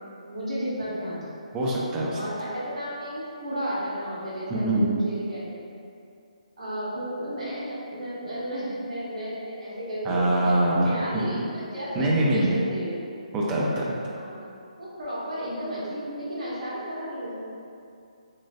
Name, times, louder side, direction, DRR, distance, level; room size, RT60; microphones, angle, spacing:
voice 1, 0.0-1.3 2.1-5.5 6.6-10.5 10.8-12.9 14.0-14.4 14.8-17.3, equal, 60° right, -9 dB, 1.2 m, -33 dB
voice 2, 1.5-2.2 4.5-4.9 10.0-11.4 11.9-12.6 13.3-14.0, right 1 dB, 15° right, -5 dB, 0.4 m, -24 dB
3.1 x 2.4 x 2.4 m, 2.5 s
hypercardioid pair, 155°, 4 cm